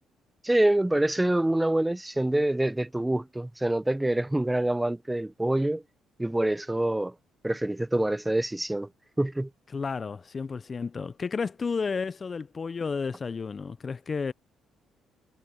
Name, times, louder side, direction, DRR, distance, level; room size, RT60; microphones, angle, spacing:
voice 1, 0.4-5.8 6.2-7.1 7.4-8.9 9.2-9.5, right 1 dB, 10° right, 0.6 m, -26 dB
voice 2, 9.7-14.3, left 5 dB, 35° left, 0.3 m, -32 dB
cardioid pair, 95°, 0 cm